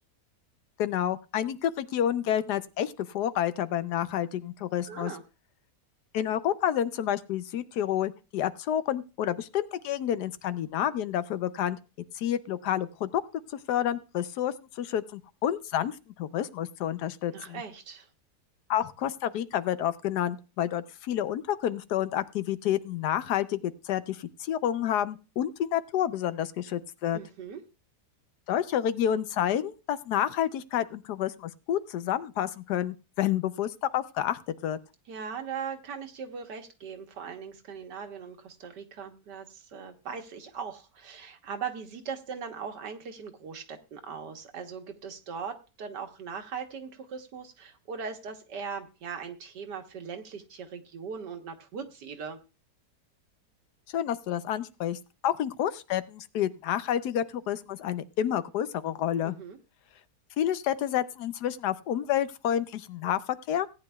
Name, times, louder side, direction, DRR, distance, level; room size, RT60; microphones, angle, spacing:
voice 1, 0.8-5.1 6.1-11.8 12.2-13.2 13.7-17.6 18.7-27.2 28.5-34.8 53.9-59.3 60.4-63.2 63.5-63.7, left 10 dB, 75° left, 13 dB, 1.2 m, -29 dB
voice 2, 4.9-5.2 17.3-18.1 27.1-27.6 35.1-52.4 59.2-59.6, right 6 dB, 85° right, 5 dB, 1.8 m, -39 dB
17.5 x 9.6 x 2.3 m, 0.30 s
omnidirectional pair, 1.8 m